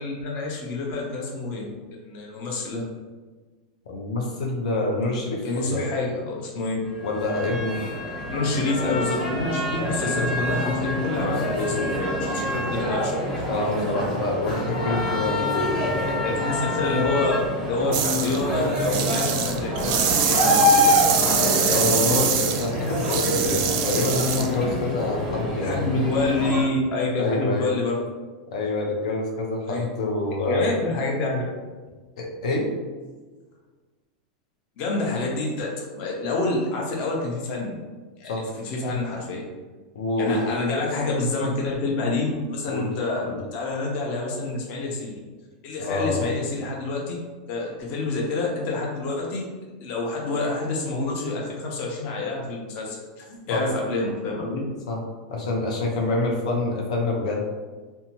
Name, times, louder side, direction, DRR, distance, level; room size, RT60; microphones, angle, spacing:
voice 1, 0.0-2.8 5.4-6.8 8.3-13.1 15.9-17.4 17.7-21.4 25.6-28.0 29.7-29.9 30.5-31.4 34.8-37.8 38.2-39.5 40.2-45.2 45.6-47.2 47.5-49.5 49.8-54.6 56.0-56.1, left 2 dB, 40° left, -2 dB, 0.6 m, -28 dB
voice 2, 3.9-5.9 7.0-7.8 13.5-16.3 21.4-25.9 27.2-27.7 28.5-30.7 32.2-32.7 38.2-38.4 39.9-40.5 42.7-42.9 43.3-43.4 45.8-46.2 53.5-53.6 54.9-55.0 55.3-57.4, left 2 dB, 85° left, 0 dB, 0.6 m, -27 dB
sound 1, 6.9-26.6, left 1 dB, 20° left, 0.9 m, -26 dB
sound 2, 17.9-18.4 18.7-24.5, right 8 dB, 45° right, 0.3 m, -24 dB
2.7 x 2.2 x 2.9 m, 1.3 s
supercardioid pair, 155°, 4 cm